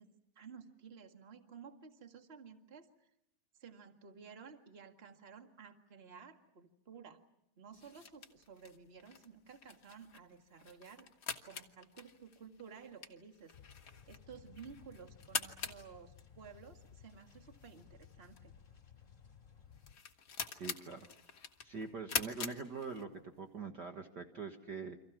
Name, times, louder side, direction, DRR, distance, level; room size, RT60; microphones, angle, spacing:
voice 1, 0.0-2.9 3.6-7.2 7.6-11.1 11.4-18.5 21.8-22.2, right 6 dB, 35° right, 6 dB, 1.0 m, -54 dB
sound 1, 7.7-23.4, left 6 dB, 50° left, 1.2 m, -45 dB
sound 2, 13.5-20.0, left 7 dB, 25° left, 2.4 m, -59 dB
voice 2, 20.6-21.1 21.6-25.0, right 5 dB, 75° right, 5 dB, 0.9 m, -44 dB
29.5 x 26.0 x 6.1 m, 0.80 s
omnidirectional pair, 4.2 m